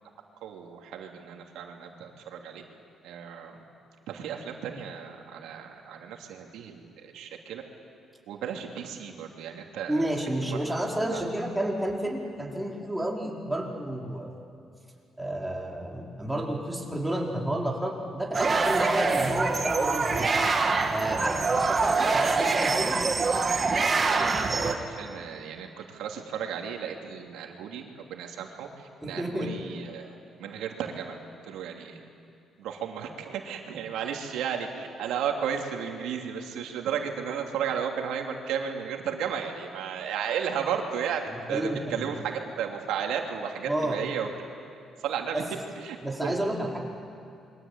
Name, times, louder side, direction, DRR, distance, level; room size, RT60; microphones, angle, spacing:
voice 1, 0.4-2.6 3.0-3.6 4.1-7.6 8.3-10.1 10.4-10.7 11.1-11.2 24.0-31.2 31.5-32.0 32.6-41.2 41.5-44.3 45.0-45.4 45.8-46.0 46.2-46.3, right 7 dB, 90° right, 2 dB, 3.0 m, -34 dB
voice 2, 9.9-14.3 15.2-20.3 20.9-23.0 29.0-29.5 41.3-42.2 43.7-44.0 45.3-45.5 46.0-46.8, right 1 dB, 5° right, -2 dB, 5.0 m, -30 dB
sound 1, 18.3-24.7, right 4 dB, 35° right, 2.7 m, -25 dB
28.0 x 23.5 x 8.9 m, 2.6 s
cardioid pair, 90°, 0 cm